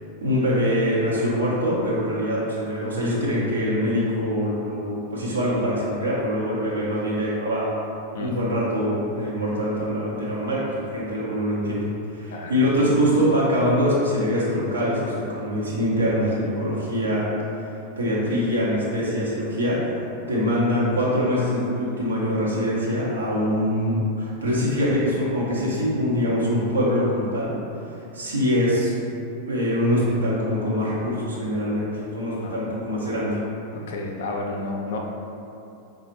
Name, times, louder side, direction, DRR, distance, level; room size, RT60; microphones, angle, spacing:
voice 1, 0.2-7.7 8.2-17.2 18.0-20.0 20.3-27.5 27.8-28.9 29.5-33.4, equal, 75° right, -7 dB, 0.9 m, -24 dB
voice 2, 12.3-12.7 32.4-32.6 33.7-35.0, left 2 dB, 55° left, 0 dB, 0.5 m, -31 dB
4.9 x 2.4 x 3.0 m, 2.7 s
figure-of-eight pair, 90°, 0 cm